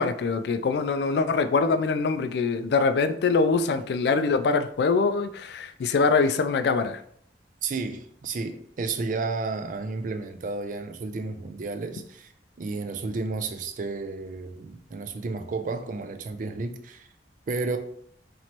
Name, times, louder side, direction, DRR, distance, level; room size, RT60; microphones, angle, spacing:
voice 1, 0.0-7.0, left 4 dB, 65° left, 0.3 m, -23 dB
voice 2, 7.6-12.3 12.6-17.1 17.5-17.8, right 3 dB, 45° right, 0.4 m, -32 dB
3.0 x 2.9 x 4.3 m
head